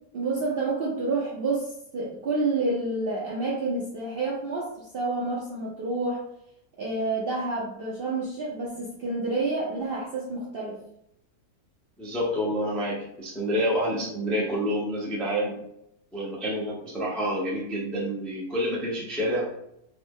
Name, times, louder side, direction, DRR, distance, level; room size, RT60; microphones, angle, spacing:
voice 1, 0.1-6.2 6.8-10.8, right 3 dB, 60° right, -4 dB, 0.6 m, -29 dB
voice 2, 12.0-15.6 16.1-19.5, equal, ahead, -4 dB, 0.4 m, -28 dB
3.4 x 2.1 x 3.6 m, 0.78 s
omnidirectional pair, 1.6 m